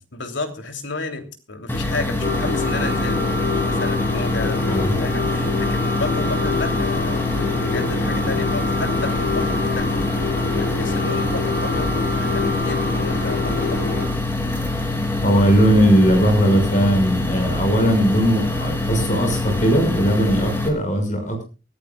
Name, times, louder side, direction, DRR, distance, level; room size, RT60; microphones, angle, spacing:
voice 1, 0.1-7.3 7.6-10.0 10.5-14.0, left 3 dB, 80° left, 5 dB, 3.2 m, -32 dB
sound 1, 1.7-20.7, left 2 dB, 10° left, 3.4 m, -24 dB
sound 2, 2.2-14.1, left 3 dB, 55° left, 5.6 m, -26 dB
voice 2, 15.2-21.5, equal, 40° left, 5 dB, 6.3 m, -18 dB
24.0 x 14.0 x 2.4 m, 0.32 s
head